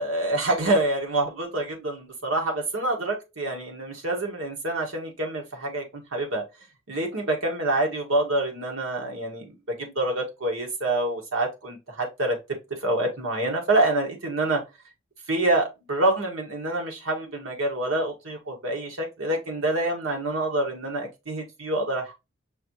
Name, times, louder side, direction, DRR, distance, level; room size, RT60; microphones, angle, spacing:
voice 1, 0.0-6.4 6.9-12.4 12.8-14.6 15.3-22.1, right 2 dB, 80° right, 1.5 m, -26 dB
5.6 x 2.7 x 2.9 m
head